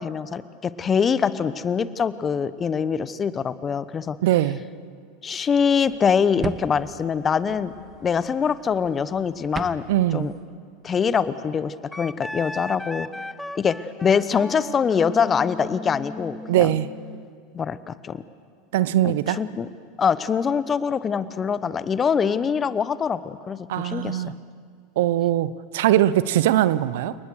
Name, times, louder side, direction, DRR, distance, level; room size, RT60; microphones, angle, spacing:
voice 1, 0.0-4.2 5.2-7.7 8.0-9.8 10.1-10.3 10.8-13.1 13.6-13.8 14.0-16.7 17.5-18.2 19.0-19.7 20.0-24.2, left 6 dB, 30° left, 15 dB, 1.0 m, -24 dB
voice 2, 4.2-4.6 9.9-10.3 16.5-16.9 18.7-19.4 23.7-24.4 25.0-27.2, right 13 dB, 70° right, 17 dB, 0.7 m, -21 dB
sound 1, 5.5-10.4, right 5 dB, 25° right, 1.1 m, -38 dB
Wind instrument woodwind instrument, 11.9-17.3, left 1 dB, 5° left, 0.6 m, -37 dB
29.5 x 19.5 x 6.6 m, 2.1 s
hypercardioid pair, 90°, 0 cm